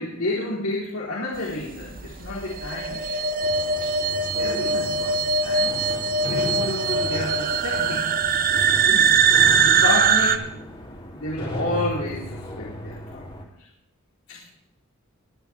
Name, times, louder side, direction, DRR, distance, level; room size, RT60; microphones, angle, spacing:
voice 1, 0.0-3.3 3.8-3.9 4.4-5.8 6.3-8.6 8.8-9.2 9.6-10.5 11.1-13.5 14.3-14.5, left 2 dB, 90° left, -5 dB, 4.2 m, -31 dB
sound 1, 1.8-10.4, right 5 dB, 40° right, 0.8 m, -21 dB
sound 2, 3.4-13.4, equal, 25° left, 3.0 m, -35 dB
22.5 x 11.0 x 3.6 m, 0.81 s
head